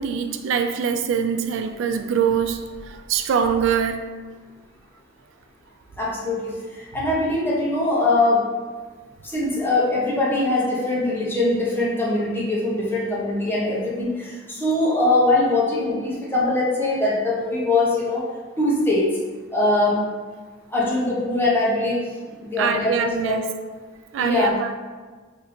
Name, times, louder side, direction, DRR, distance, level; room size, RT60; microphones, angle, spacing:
voice 1, 0.0-4.1 22.6-23.5 24.1-24.7, right 7 dB, 75° right, 8 dB, 0.3 m, -23 dB
voice 2, 6.0-8.4 9.2-18.2 18.6-19.1 19.5-20.1 20.7-22.1 22.4-23.4 24.2-24.5, left 2 dB, 10° left, -6 dB, 0.8 m, -22 dB
2.7 x 2.7 x 4.1 m, 1.4 s
head